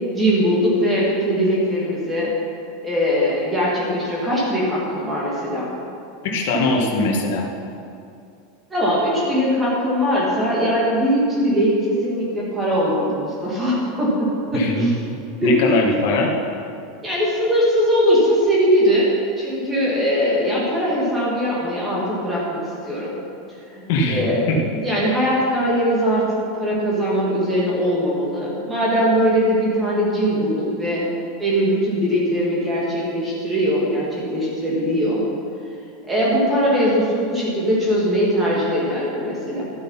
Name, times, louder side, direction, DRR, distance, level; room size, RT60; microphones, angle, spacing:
voice 1, 0.1-2.3 2.8-5.7 8.7-14.9 15.4-15.5 17.0-19.1 19.4-22.6 22.9-23.1 23.7-24.4 24.8-31.0 31.4-35.2 36.1-39.6, equal, 10° right, -6 dB, 2.5 m, -20 dB
voice 2, 6.2-7.5 14.5-14.9 15.4-16.3 23.9-24.6 25.1-25.2, left 2 dB, 55° left, 0 dB, 1.7 m, -21 dB
12.0 x 8.2 x 5.7 m, 2.5 s
supercardioid pair, 170°, 0 cm